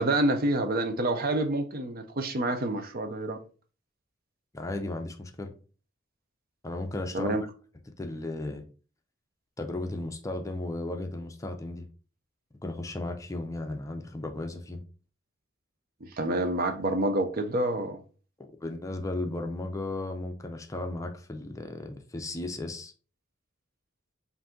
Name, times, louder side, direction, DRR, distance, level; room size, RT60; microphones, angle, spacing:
voice 1, 0.0-3.4 7.1-7.4 16.0-18.0, right 2 dB, 50° right, 0.6 m, -28 dB
voice 2, 4.5-5.5 6.6-7.4 8.0-8.6 9.6-11.9 12.6-14.8 18.4-22.9, left 2 dB, 15° left, 0.5 m, -35 dB
5.0 x 2.6 x 3.7 m
head